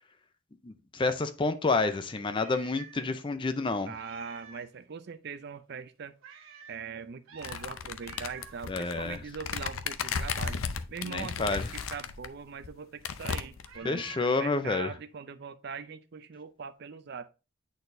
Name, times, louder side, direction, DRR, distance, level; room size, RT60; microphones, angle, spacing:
voice 1, 0.6-3.9 8.7-9.2 11.0-11.7 13.8-14.9, left 3 dB, 25° left, 0.4 m, -29 dB
Meow, 1.6-3.1 3.4-3.5 3.9-4.7 6.2-6.8 7.3-7.7 8.0-8.6 11.5-12.1 13.7-14.4, right 6 dB, 90° right, 1.0 m, -50 dB
voice 2, 3.9-6.1 6.7-10.6 10.9-17.3, right 5 dB, 55° right, 0.4 m, -41 dB
sound 1, 7.4-12.3 12.6-12.7 13.0-13.8, left 6 dB, 85° left, 0.5 m, -35 dB
8.8 x 4.1 x 2.6 m
head